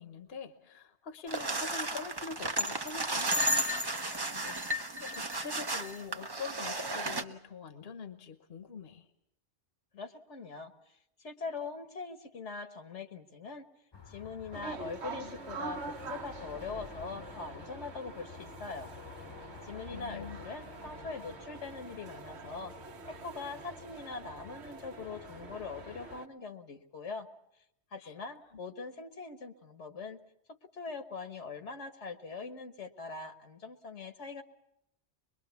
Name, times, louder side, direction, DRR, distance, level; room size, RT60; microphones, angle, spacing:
voice 1, 0.0-3.7 4.3-9.1 14.4-14.6 15.2-15.3 19.9-20.4 28.0-28.1, left 5 dB, 60° left, 9 dB, 1.3 m, -45 dB
sound 1, 1.3-7.2, right 1 dB, 25° right, 0.8 m, -33 dB
voice 2, 9.9-10.7 11.2-13.7 14.1-18.9 19.6-22.7 23.1-27.3 27.9-30.2 30.7-34.4, left 4 dB, 75° left, 7 dB, 1.7 m, -42 dB
sound 2, 13.9-26.2, left 4 dB, 25° left, 0.9 m, -51 dB
sound 3, 14.5-26.3, right 4 dB, 70° right, 1.4 m, -46 dB
23.0 x 22.5 x 7.0 m, 0.80 s
omnidirectional pair, 1.2 m